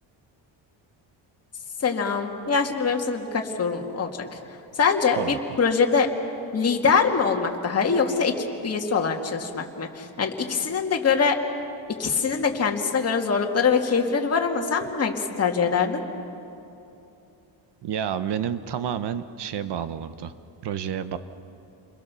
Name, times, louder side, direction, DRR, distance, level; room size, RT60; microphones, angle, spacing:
voice 1, 1.8-4.4 4.8-6.1 6.5-11.4 12.0-16.0, left 5 dB, 30° left, 2 dB, 2.1 m, -23 dB
voice 2, 17.8-20.3 20.6-21.2, right 8 dB, 60° right, 12 dB, 1.2 m, -29 dB
29.5 x 22.0 x 7.0 m, 2.8 s
cardioid pair, 140°, 47 cm